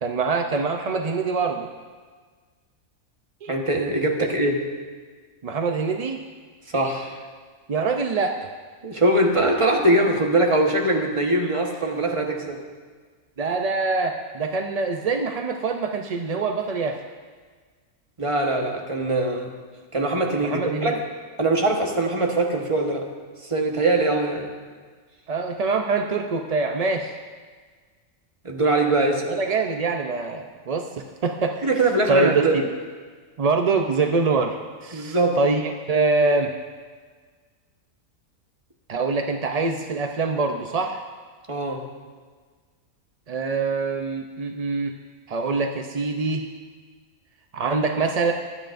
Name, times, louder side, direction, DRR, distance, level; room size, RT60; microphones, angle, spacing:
voice 1, 0.0-1.7 3.4-3.5 5.4-6.2 7.7-8.4 13.4-17.0 20.4-20.9 25.3-27.1 29.3-31.7 32.1-32.4 33.4-36.5 38.9-41.0 43.3-44.9 45.3-46.5 47.5-48.3, right 4 dB, 55° right, 4 dB, 0.4 m, -24 dB
voice 2, 3.5-4.6 6.7-7.2 8.8-12.6 18.2-19.5 19.9-21.0 21.4-23.0 23.4-24.5 28.4-29.3 31.6-32.6 34.9-35.4 41.5-41.8, right 2 dB, 25° right, 1 dB, 1.2 m, -22 dB
23.0 x 9.0 x 2.6 m, 1.5 s
omnidirectional pair, 1.4 m